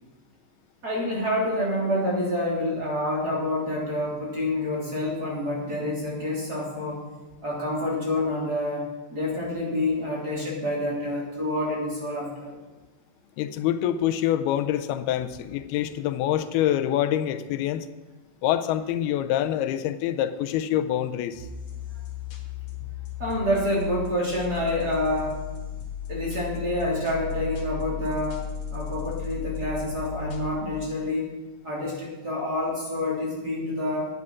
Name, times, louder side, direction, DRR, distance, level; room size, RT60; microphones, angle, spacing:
voice 1, 0.8-7.0 7.4-8.9 9.1-12.6 23.2-25.4 26.1-28.4 28.7-31.4 31.6-34.1, left 1 dB, 25° right, -5 dB, 3.5 m, -28 dB
voice 2, 13.4-17.9 18.4-21.5, left 11 dB, 85° left, 10 dB, 2.6 m, -26 dB
sound 1, 21.3-30.5, left 5 dB, 60° left, 3.2 m, -35 dB
11.0 x 9.5 x 6.0 m, 1.2 s
omnidirectional pair, 4.4 m